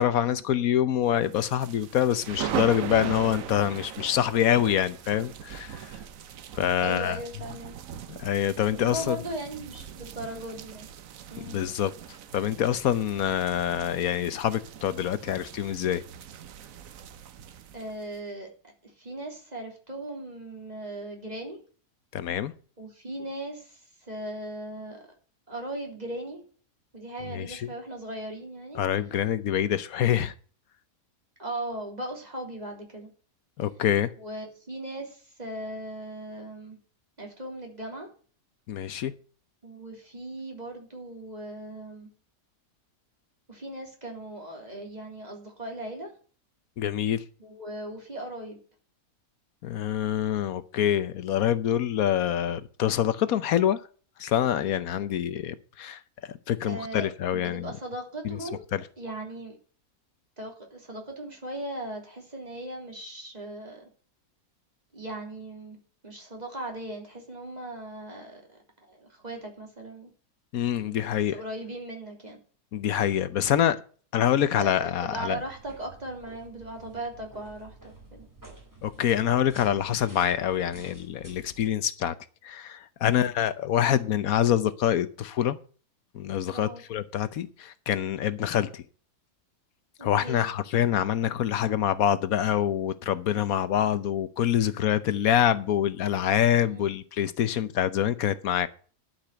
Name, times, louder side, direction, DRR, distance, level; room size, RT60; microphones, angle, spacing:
voice 1, 0.0-5.9 6.6-7.2 8.2-9.2 11.4-11.9 12.3-16.0 22.1-22.5 27.3-27.6 28.8-30.3 33.6-34.1 38.7-39.1 46.8-47.2 49.6-53.8 54.2-56.0 56.5-57.7 58.2-58.4 58.7-58.8 70.5-71.4 72.7-73.8 74.1-75.4 78.8-82.1 82.4-85.6 86.1-88.8 90.0-98.7, left 10 dB, 75° left, 1.2 m, -25 dB
sound 1, 1.2-18.2, right 9 dB, 70° right, 1.2 m, -40 dB
voice 2, 6.8-7.7 8.8-10.9 11.3-11.6 17.7-18.5 18.8-21.6 22.8-25.1 25.5-26.4 26.9-28.8 31.4-33.1 34.2-36.8 37.2-38.1 39.6-42.1 43.5-46.1 47.4-48.6 56.6-58.6 59.0-59.6 60.4-63.9 64.9-65.8 66.0-68.6 68.9-70.1 70.8-72.4 74.6-78.3 83.1-83.3 86.5-86.8 90.0-90.5 96.7-97.0, right 1 dB, 30° right, 3.4 m, -38 dB
sound 2, 75.3-81.7, right 3 dB, 10° right, 4.0 m, -50 dB
11.5 x 6.0 x 7.8 m
omnidirectional pair, 1.5 m